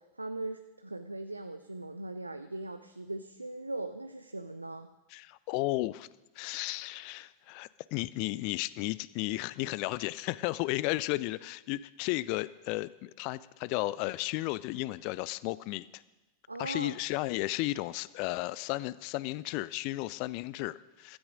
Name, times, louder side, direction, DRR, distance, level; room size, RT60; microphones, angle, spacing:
voice 1, 0.0-4.9 16.5-16.9, right 2 dB, 85° right, 9 dB, 0.6 m, -39 dB
voice 2, 5.1-6.1 6.4-16.0 16.6-21.2, left 19 dB, 45° left, 19 dB, 0.5 m, -34 dB
15.5 x 13.0 x 5.2 m, 1.1 s
figure-of-eight pair, 90°, 0 cm